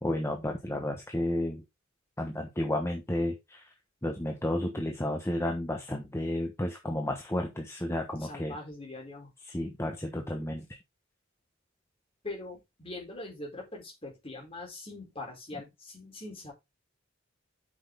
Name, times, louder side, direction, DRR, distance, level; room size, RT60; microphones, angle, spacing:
voice 1, 0.0-1.6 2.2-3.6 4.0-8.6 9.5-10.6, left 1 dB, 15° left, 1.1 m, -32 dB
voice 2, 8.2-9.3 12.2-16.5, left 2 dB, 30° left, 4.0 m, -42 dB
8.1 x 6.2 x 3.8 m
head